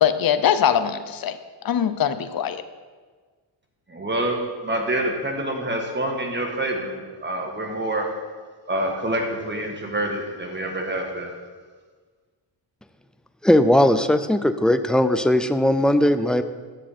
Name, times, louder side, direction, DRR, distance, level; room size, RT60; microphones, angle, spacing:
voice 1, 0.0-1.4 1.6-2.6, left 9 dB, 50° left, 11 dB, 0.7 m, -21 dB
voice 2, 3.9-8.1 8.7-11.3, right 1 dB, 25° right, 2 dB, 1.6 m, -27 dB
voice 3, 13.4-16.4, left 1 dB, ahead, 9 dB, 0.4 m, -18 dB
10.5 x 7.3 x 4.2 m, 1.5 s
cardioid pair, 90°, 45 cm